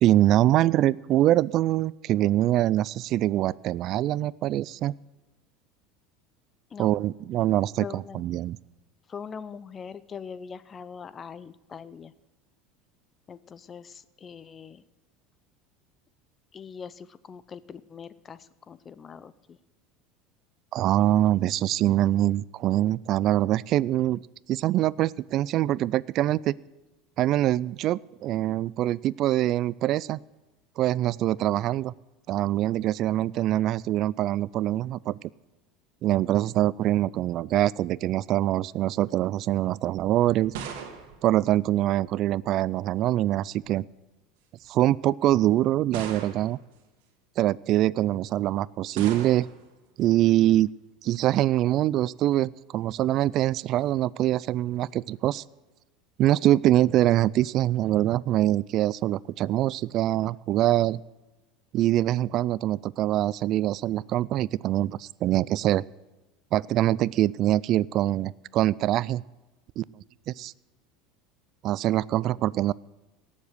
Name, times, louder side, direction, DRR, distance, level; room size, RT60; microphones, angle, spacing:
voice 1, 0.0-4.9 6.8-8.6 20.7-24.2 24.5-26.5 27.2-30.2 30.8-31.9 32.3-35.2 36.0-40.5 41.2-43.9 44.7-46.6 47.4-49.5 50.0-50.7 51.0-55.4 56.2-61.0 61.7-65.8 66.5-69.2 69.8-70.5 71.6-72.7, right 14 dB, 50° right, 23 dB, 0.3 m, -24 dB
voice 2, 7.8-8.3 9.1-12.1 13.3-14.8 16.5-19.6, left 6 dB, 30° left, 17 dB, 0.7 m, -42 dB
sound 1, 39.9-42.3 43.3-43.8 44.6-44.7 45.9-46.7 49.0-49.7, right 7 dB, 75° right, 1.7 m, -39 dB
17.5 x 7.4 x 6.4 m, 1.1 s
supercardioid pair, 95°, 0 cm